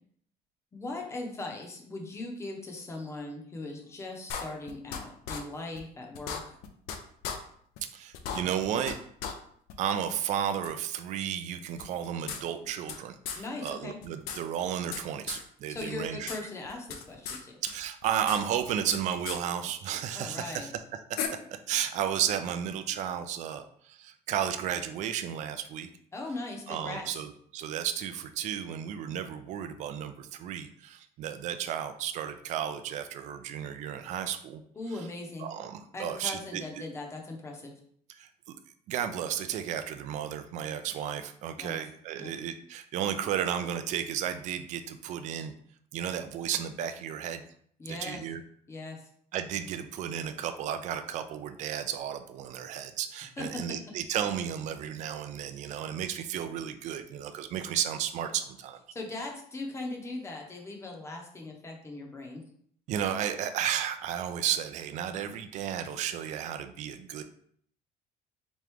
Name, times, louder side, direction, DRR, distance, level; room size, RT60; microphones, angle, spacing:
voice 1, 0.7-6.4 13.4-14.0 15.7-17.5 20.1-20.7 26.1-27.2 34.7-35.5 35.9-37.7 41.6-41.8 42.2-42.3 47.8-48.2 48.7-49.1 53.4-53.6 58.9-62.4, left 2 dB, 15° left, 1 dB, 0.7 m, -39 dB
sound 1, 4.3-5.0 5.3-5.4 5.8-5.9 6.1-7.0 7.2-7.4 7.8-7.9 8.1-8.9 9.2-9.3 9.7-9.8 10.6-10.7 11.8-13.0 13.2-13.4 13.7-13.8 14.0-15.0 15.3-15.4 15.8-16.4 16.6-17.4 17.7-19.0 19.2-19.4 20.5-20.6 21.2-21.3, left 7 dB, 85° left, 0.6 m, -36 dB
voice 2, 7.9-9.0 9.8-16.3 17.6-20.7 21.1-21.2 21.5-25.9 26.7-34.6 35.4-36.8 38.2-38.6 38.9-45.5 45.9-47.4 47.9-48.4 49.3-58.8 62.9-67.2, right 9 dB, 50° right, 9 dB, 0.4 m, -33 dB
3.6 x 3.0 x 3.4 m, 0.62 s
cardioid pair, 150°, 15 cm